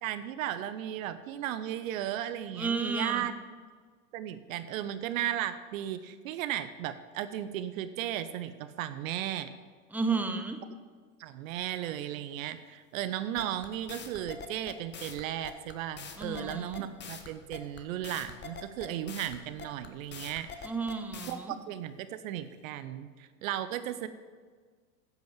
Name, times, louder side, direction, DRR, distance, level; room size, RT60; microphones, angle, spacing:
voice 1, 0.0-3.3 4.1-9.5 11.2-20.7 21.3-24.1, right 11 dB, 60° right, 12 dB, 0.8 m, -35 dB
voice 2, 2.6-3.3 9.9-10.6 16.2-16.8 20.6-21.5, right 4 dB, 5° right, 6 dB, 0.9 m, -32 dB
sound 1, 13.4-21.3, left 6 dB, 25° left, 1.2 m, -44 dB
10.5 x 6.2 x 7.3 m, 1.5 s
hypercardioid pair, 100°, 45 cm